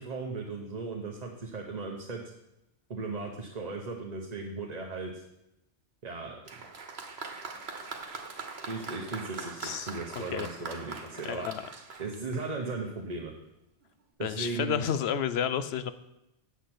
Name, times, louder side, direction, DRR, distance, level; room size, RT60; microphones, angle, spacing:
voice 1, 0.0-2.2 2.9-5.2 6.0-6.4 8.7-11.5 12.0-13.3 14.2-14.8, right 3 dB, 40° right, 1 dB, 1.1 m, -37 dB
Applause, 6.5-12.9 13.8-13.9, right 4 dB, 75° right, 1.4 m, -42 dB
voice 2, 11.2-11.6 14.2-15.9, left 8 dB, 80° left, 13 dB, 0.9 m, -30 dB
8.3 x 6.5 x 7.7 m, 0.89 s
omnidirectional pair, 1.1 m